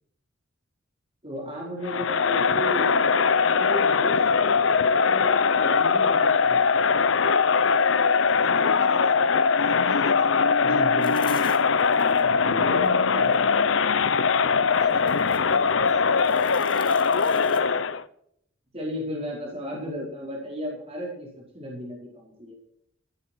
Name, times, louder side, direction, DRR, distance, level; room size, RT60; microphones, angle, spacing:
voice 1, 1.2-2.9 3.4-6.8 10.6-11.3 12.2-13.8 18.7-22.6, equal, 30° right, -3 dB, 4.9 m, -35 dB
Crowd, 1.8-18.0, left 5 dB, 75° left, 0.7 m, -21 dB
voice 2, 8.4-9.2 9.5-10.3 14.7-17.9, right 1 dB, 55° right, 2 dB, 4.2 m, -44 dB
sound 1, 11.0-12.2 12.8-13.4 14.7-15.5 15.9-17.6, left 7 dB, 25° left, 2.1 m, -46 dB
16.0 x 11.5 x 4.7 m, 0.70 s
head